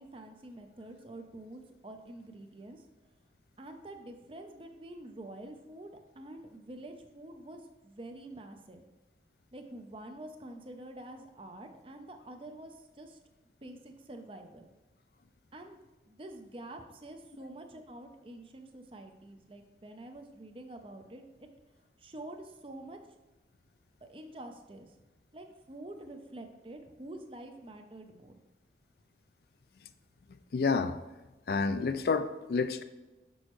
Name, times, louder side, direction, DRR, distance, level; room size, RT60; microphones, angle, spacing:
voice 1, 0.0-2.8 3.6-8.8 9.5-13.2 13.6-14.6 15.5-15.8 16.1-21.5 22.0-23.0 24.0-24.9 25.3-28.3, right 1 dB, 30° right, 5 dB, 0.6 m, -47 dB
voice 2, 30.5-31.0 31.5-32.8, left 4 dB, 60° left, 10 dB, 0.4 m, -29 dB
6.4 x 6.2 x 3.1 m, 1.1 s
head